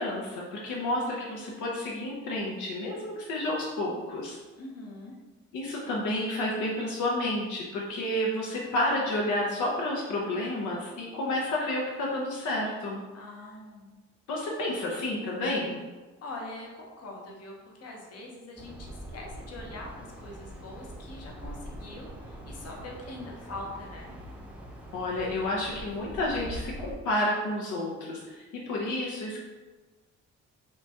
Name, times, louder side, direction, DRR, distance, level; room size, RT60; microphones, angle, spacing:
voice 1, 0.0-4.4 5.5-13.0 14.3-15.8 24.9-29.4, left 1 dB, 75° left, -3 dB, 0.8 m, -30 dB
voice 2, 4.6-5.1 13.1-13.9 16.2-24.2, left 2 dB, 55° left, -1 dB, 1.0 m, -43 dB
sound 1, 18.6-26.9, right 1 dB, 5° right, 0.7 m, -43 dB
5.7 x 2.3 x 2.9 m, 1.3 s
cardioid pair, 90°, 30 cm